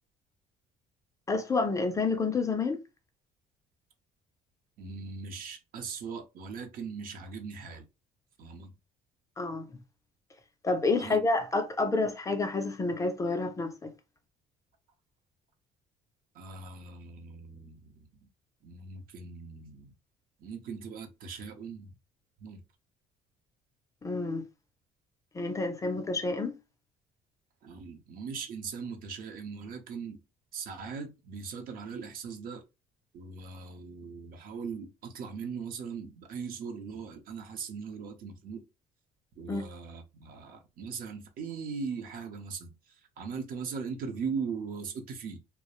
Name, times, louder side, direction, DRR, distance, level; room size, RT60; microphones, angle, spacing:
voice 1, 1.3-2.8 9.4-9.7 10.6-13.9 24.0-24.4 25.3-26.5 39.5-39.6, left 3 dB, 20° left, 0.3 m, -29 dB
voice 2, 4.8-7.9 8.4-8.8 11.0-11.3 16.3-18.3 18.6-19.9 20.4-22.0 22.4-22.6 27.6-30.2 30.5-32.6 33.1-38.6 39.4-45.4, right 5 dB, 60° right, 0.6 m, -40 dB
2.3 x 2.0 x 2.9 m
cardioid pair, 155°, 17 cm